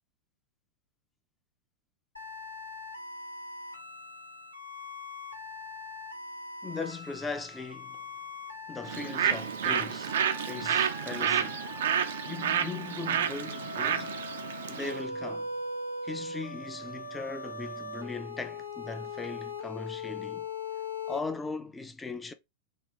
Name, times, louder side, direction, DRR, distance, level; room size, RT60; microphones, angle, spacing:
sound 1, 2.2-21.2, left 3 dB, 85° left, 0.6 m, -41 dB
voice 1, 6.6-8.1 8.7-11.6 12.3-14.2 14.7-15.5 16.0-20.5 21.1-22.3, left 4 dB, 10° left, 0.5 m, -39 dB
Bird, 8.9-15.0, right 8 dB, 60° right, 0.4 m, -30 dB
3.9 x 2.4 x 3.3 m
figure-of-eight pair, 90°, 0 cm